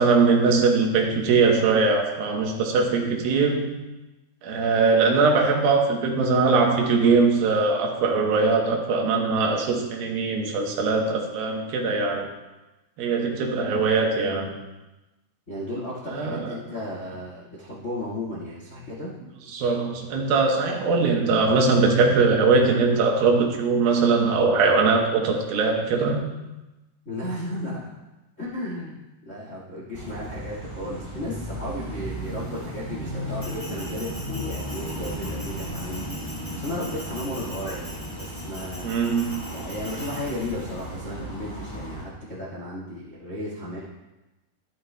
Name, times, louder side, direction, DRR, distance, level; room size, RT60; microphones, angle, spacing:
voice 1, 0.0-3.7 4.4-12.3 13.0-14.5 16.1-16.5 19.5-26.2 38.8-39.4, right 4 dB, 70° right, 1 dB, 2.7 m, -21 dB
voice 2, 15.5-19.1 27.0-27.8 28.4-28.9 29.2-38.9 39.5-43.8, left 1 dB, 80° left, -5 dB, 0.6 m, -34 dB
sound 1, 29.9-42.0, equal, 45° left, 0.3 m, -35 dB
Bell, 33.4-40.8, equal, 5° left, 2.5 m, -42 dB
12.5 x 11.0 x 2.2 m, 1.0 s
omnidirectional pair, 4.6 m